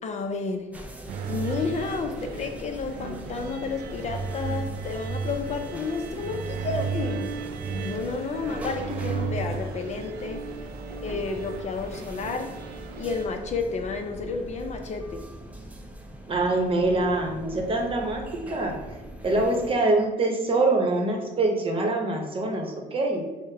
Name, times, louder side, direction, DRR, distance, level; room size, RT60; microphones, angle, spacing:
voice 1, 0.0-0.7 1.3-7.3 7.6-10.4 11.0-15.2, left 4 dB, 40° left, 5 dB, 0.5 m, -31 dB
sound 1, 0.7-19.7, right 1 dB, 10° right, 0.5 m, -42 dB
sound 2, 1.1-13.3, right 5 dB, 70° right, 0.5 m, -34 dB
voice 2, 16.3-18.7 19.2-23.2, right 2 dB, 30° right, 2 dB, 0.9 m, -24 dB
6.3 x 2.1 x 3.4 m, 1.2 s
cardioid pair, 110°, 17 cm